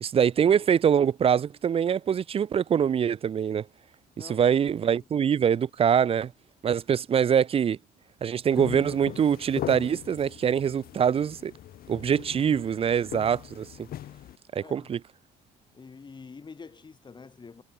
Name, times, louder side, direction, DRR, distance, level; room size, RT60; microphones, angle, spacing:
voice 1, 0.0-3.6 4.3-6.3 6.6-7.8 8.2-11.5 11.9-13.9 14.5-15.0, right 8 dB, 35° right, 0.6 m, -24 dB
voice 2, 4.2-4.5 5.0-5.1 14.6-14.9 15.7-17.6, left 5 dB, 25° left, 3.1 m, -46 dB
sound 1, 8.5-14.4, left 12 dB, 60° left, 1.9 m, -40 dB
cardioid pair, 110°, 17 cm